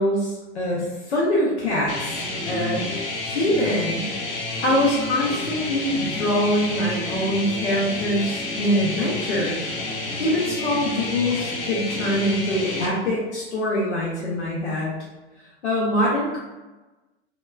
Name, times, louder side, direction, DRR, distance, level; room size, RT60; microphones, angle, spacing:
voice 1, 0.0-2.8 3.2-4.1 4.6-9.7 10.2-14.9 15.6-16.4, equal, 90° left, -5 dB, 0.7 m, -24 dB
sound 1, 1.9-12.9, left 2 dB, 45° left, 0.7 m, -29 dB
2.9 x 2.2 x 2.2 m, 1.1 s
hypercardioid pair, 105°, 33 cm